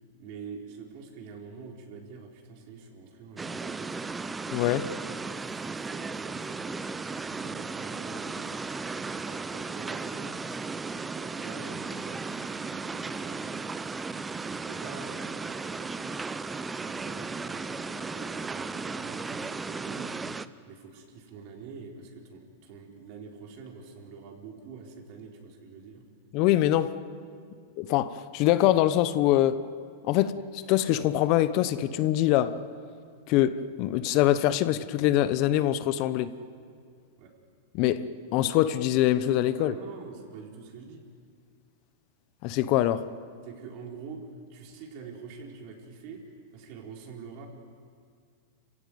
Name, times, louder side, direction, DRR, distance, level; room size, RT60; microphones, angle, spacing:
voice 1, 0.2-4.0 4.6-5.0 5.3-8.7 9.2-10.3 10.8-13.4 14.4-20.1 20.7-26.0 37.2-37.3 39.6-41.0 43.4-44.2 44.5-46.2 46.5-47.5, right 5 dB, 55° right, 4.2 m, -46 dB
sound 1, 3.4-20.5, right 4 dB, 15° right, 0.7 m, -35 dB
voice 2, 4.5-4.9 26.3-26.9 27.8-29.6 30.0-32.6 33.3-36.3 37.7-39.7 42.4-43.1, left 13 dB, 50° left, 0.9 m, -24 dB
26.5 x 16.0 x 9.3 m
hypercardioid pair, 120°, 0 cm